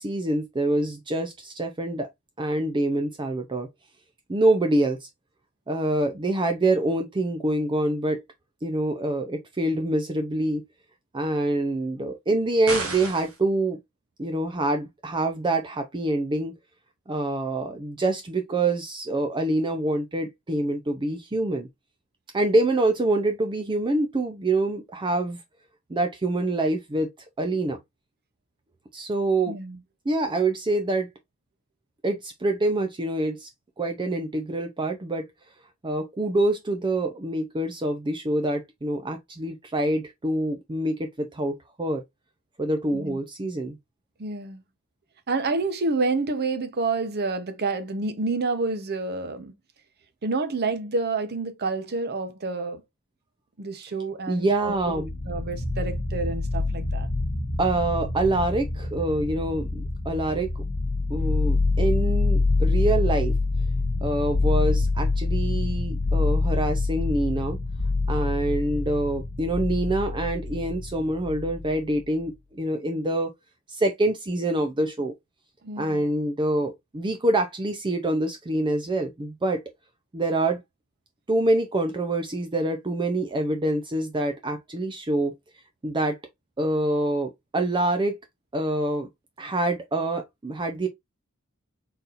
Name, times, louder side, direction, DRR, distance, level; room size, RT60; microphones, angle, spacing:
voice 1, 0.0-2.1 2.4-3.7 4.3-5.1 5.7-8.2 8.6-10.6 11.1-13.8 14.2-16.5 17.1-21.7 22.3-25.4 25.9-27.1 27.4-27.8 28.9-29.6 30.1-31.1 32.0-33.5 33.8-35.3 35.8-42.0 42.6-43.8 54.3-55.1 57.6-60.6 61.1-63.4 64.0-67.6 68.1-73.3 73.7-75.1 75.8-79.6 80.1-80.6 81.3-85.3 85.8-86.2 86.6-88.2 88.5-89.1 89.4-90.9, right 2 dB, 20° right, 0.5 m, -26 dB
sound 1, 12.7-13.4, right 3 dB, 70° right, 1.4 m, -31 dB
voice 2, 29.5-29.8 42.9-43.2 44.2-44.6 45.3-49.5 50.2-52.8 53.6-54.9 55.3-57.1 75.6-76.0, right 3 dB, 50° right, 0.8 m, -28 dB
sound 2, 54.6-72.0, left 3 dB, 55° left, 1.0 m, -26 dB
4.1 x 4.1 x 2.5 m
head